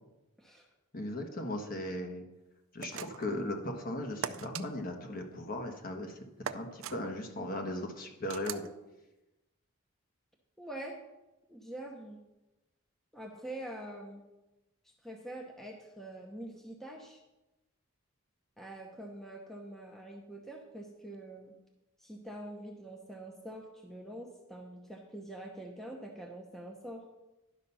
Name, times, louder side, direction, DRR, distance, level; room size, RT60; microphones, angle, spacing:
voice 1, 0.9-2.2 2.7-6.2 6.5-8.6, left 1 dB, 40° left, 3 dB, 1.2 m, -37 dB
sound 1, 2.8-3.4 4.2-4.7 6.4-7.0 8.3-8.7, right 8 dB, 75° right, 0.5 m, -39 dB
voice 2, 10.6-11.0 11.5-12.2 13.1-14.2 15.0-17.2 18.6-21.5 22.0-27.0, right 1 dB, ahead, 1 dB, 0.8 m, -45 dB
11.5 x 5.7 x 5.5 m, 1.0 s
head